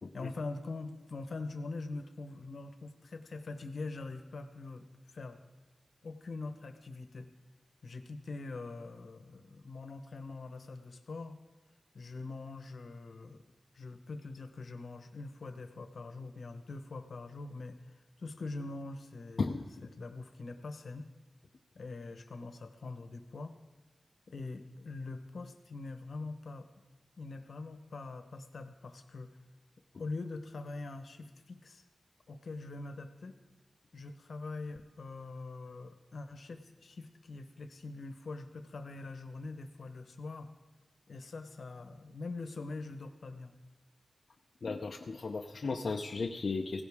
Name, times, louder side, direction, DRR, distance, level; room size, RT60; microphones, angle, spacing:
voice 1, 0.1-4.8 5.1-5.4 6.0-7.3 7.8-11.3 11.9-13.4 13.7-17.9 18.2-19.5 19.9-21.1 21.7-23.6 24.3-26.7 27.2-29.3 30.0-31.8 32.3-33.4 33.9-40.5 41.1-43.5, left 3 dB, 85° left, 8 dB, 1.0 m, -43 dB
voice 2, 19.4-19.7 44.6-46.8, left 4 dB, 70° left, 1 dB, 0.6 m, -35 dB
16.5 x 16.0 x 3.6 m, 1.2 s
wide cardioid pair, 110°, 0 cm